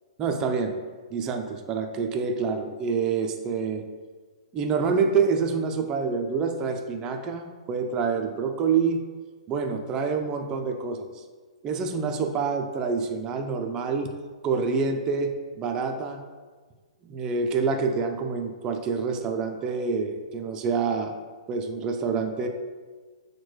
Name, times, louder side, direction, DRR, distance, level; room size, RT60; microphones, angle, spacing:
voice 1, 0.2-0.7 1.1-3.8 4.5-9.0 9.5-11.2 11.6-14.1 14.4-16.2 17.0-21.1 21.5-22.5, right 5 dB, 20° right, 4 dB, 0.3 m, -27 dB
6.1 x 2.1 x 3.1 m, 1.4 s
hypercardioid pair, 150°, 4 cm